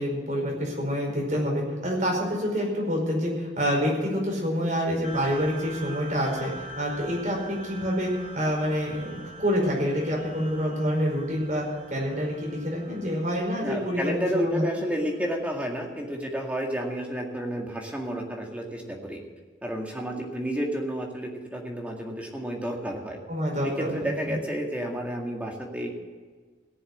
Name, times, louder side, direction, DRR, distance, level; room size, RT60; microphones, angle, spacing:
voice 1, 0.0-14.7 23.3-24.4, equal, 45° right, -2 dB, 5.1 m, -27 dB
sound 1, 5.0-15.9, right 2 dB, 35° left, 3.7 m, -44 dB
voice 2, 13.6-19.2 19.6-23.2 23.6-25.9, equal, 10° right, 0 dB, 2.0 m, -31 dB
18.0 x 7.1 x 7.8 m, 1.4 s
head